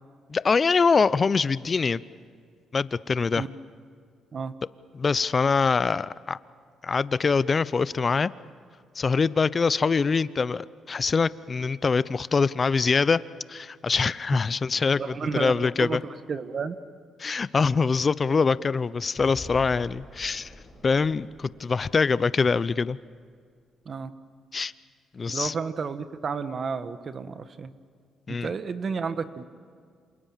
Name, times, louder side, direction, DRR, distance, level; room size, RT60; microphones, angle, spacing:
voice 1, 0.3-2.0 2.7-3.4 4.9-6.4 6.8-8.3 8.9-13.2 13.5-16.0 17.2-20.5 20.8-23.0 24.5-24.7 25.1-25.5 28.3-28.5, left 5 dB, 35° left, 17 dB, 0.7 m, -24 dB
voice 2, 14.9-16.7 23.8-24.1 25.3-27.7 28.3-29.4, right 5 dB, 45° right, 11 dB, 1.4 m, -32 dB
sound 1, 19.2-23.3, left 1 dB, 5° left, 5.3 m, -46 dB
28.0 x 27.5 x 7.5 m, 2.1 s
cardioid pair, 90°, 0 cm